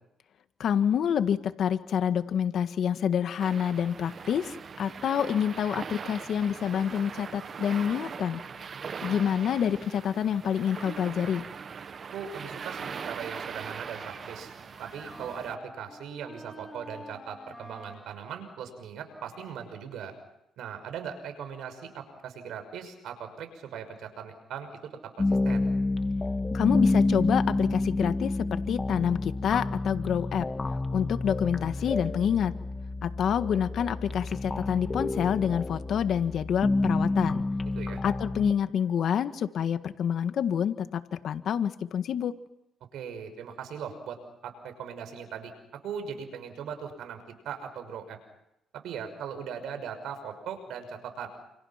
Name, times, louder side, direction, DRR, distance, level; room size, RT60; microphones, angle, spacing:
voice 1, 0.6-8.4 9.0-11.4 26.5-30.5 30.9-32.5 33.0-37.4 38.0-42.3, left 8 dB, 65° left, 10 dB, 1.7 m, -27 dB
sound 1, 3.4-15.6, right 6 dB, 45° right, 1.2 m, -40 dB
voice 2, 12.1-14.5 14.8-20.2 20.6-25.7 37.8-38.0 42.9-44.2 44.4-45.5 45.8-48.2 48.7-51.3, right 7 dB, 80° right, 7 dB, 5.9 m, -39 dB
Wind instrument woodwind instrument, 13.4-20.0, left 1 dB, 5° left, 4.7 m, -50 dB
sound 2, 25.2-38.5, left 2 dB, 25° left, 1.7 m, -29 dB
29.5 x 28.5 x 5.9 m, 0.86 s
cardioid pair, 90°, 0 cm